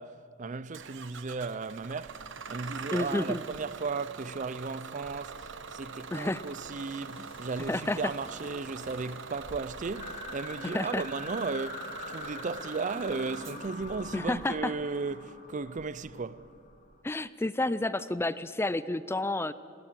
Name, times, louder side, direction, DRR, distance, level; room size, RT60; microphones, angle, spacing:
voice 1, 0.0-2.2 2.5-16.5, right 4 dB, 40° right, 0.5 m, -35 dB
Bus / Engine starting, 0.7-17.0, right 5 dB, 65° right, 1.0 m, -44 dB
voice 2, 2.9-3.4 6.1-6.4 7.7-8.0 10.6-11.0 14.1-14.7 17.0-19.5, left 2 dB, 10° left, 0.4 m, -30 dB
sound 1, 5.0-10.4, left 1 dB, 75° left, 3.3 m, -53 dB
sound 2, 9.9-16.8, left 3 dB, 45° left, 2.3 m, -44 dB
20.5 x 16.5 x 8.9 m
head